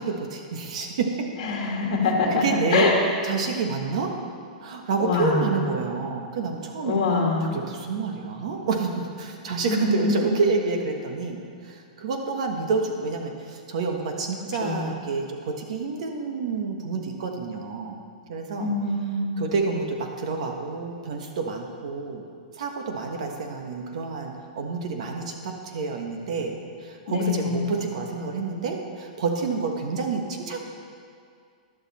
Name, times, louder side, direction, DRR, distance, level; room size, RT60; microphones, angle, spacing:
voice 1, 0.0-1.3 2.3-2.9 3.2-4.1 4.6-7.0 7.5-11.4 11.6-18.0 18.3-18.7 19.4-22.2 22.5-30.6, right 4 dB, 50° right, 3 dB, 1.3 m, -28 dB
voice 2, 1.4-2.4 2.7-2.9 5.0-5.5 6.8-7.6 9.7-10.1 14.6-14.9 18.6-19.3 27.1-27.7, left 4 dB, 45° left, 0 dB, 2.1 m, -24 dB
12.0 x 11.5 x 4.2 m, 2.2 s
supercardioid pair, 180°, 4 cm